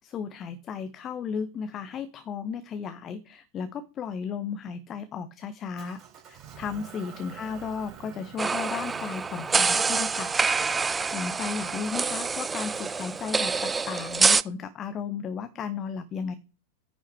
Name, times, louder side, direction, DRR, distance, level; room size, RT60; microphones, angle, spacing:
voice 1, 0.0-6.0 6.3-10.3 11.1-16.3, left 6 dB, 30° left, 12 dB, 0.8 m, -34 dB
Motor vehicle (road) / Engine, 5.8-14.2, right 8 dB, 30° right, 4.0 m, -48 dB
sound 1, 8.4-14.4, right 4 dB, 15° right, 0.4 m, -26 dB
9.7 x 5.5 x 4.7 m, 0.34 s
figure-of-eight pair, 90°, 0 cm